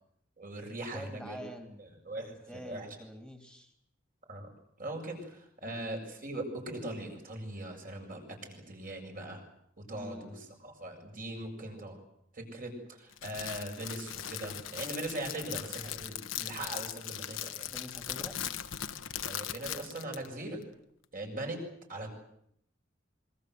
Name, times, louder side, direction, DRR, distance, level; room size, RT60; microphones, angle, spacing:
voice 1, 0.4-1.4 2.0-2.9 4.3-4.5 4.8-9.4 9.8-12.0 12.3-17.7 19.2-20.6 21.1-21.6 21.9-22.1, right 1 dB, 45° right, 2 dB, 7.5 m, -40 dB
voice 2, 0.9-1.8 2.5-3.7 5.7-5.8 9.9-10.4 17.7-18.4, equal, 5° right, 4 dB, 2.9 m, -46 dB
Crackle, 13.1-20.3, left 10 dB, 75° left, 1.3 m, -39 dB
26.5 x 23.5 x 8.0 m, 0.72 s
head